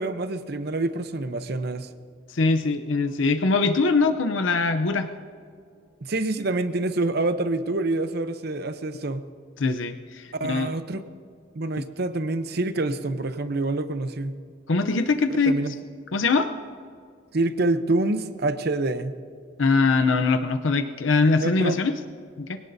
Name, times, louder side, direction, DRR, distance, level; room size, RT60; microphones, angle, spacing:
voice 1, 0.0-1.9 6.0-9.2 10.4-11.0 11.5-14.3 15.3-15.7 17.3-19.2 21.4-21.8, right 2 dB, 55° right, 11 dB, 0.7 m, -26 dB
voice 2, 2.3-5.1 9.6-10.7 14.7-15.5 16.1-16.5 19.6-21.9 22.4-22.6, left 3 dB, 75° left, 7 dB, 0.6 m, -22 dB
23.5 x 17.5 x 2.7 m, 2.3 s
head